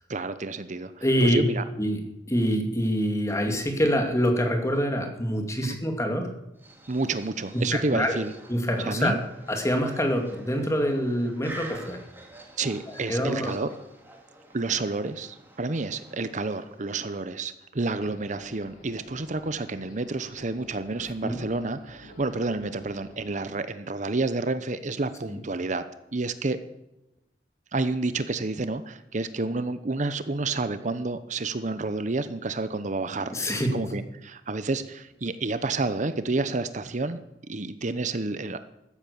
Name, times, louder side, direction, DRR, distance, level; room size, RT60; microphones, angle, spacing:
voice 1, 0.1-0.9 1.2-1.6 5.6-5.8 6.9-8.3 8.8-9.2 12.6-13.7 14.5-25.8 26.1-26.6 27.7-37.2 37.5-38.6, right 3 dB, 45° right, 12 dB, 0.8 m, -29 dB
voice 2, 1.0-1.4 1.8-6.3 7.5-8.2 8.5-9.2 9.5-12.0 12.9-13.5 21.2-21.4 25.3-25.4 33.2-33.8, equal, 15° left, 4 dB, 2.5 m, -25 dB
sound 1, 6.6-17.0, right 2 dB, 10° right, 2.8 m, -47 dB
sound 2, 17.8-23.3, equal, 50° left, 7.3 m, -50 dB
15.0 x 13.0 x 7.0 m, 0.92 s
head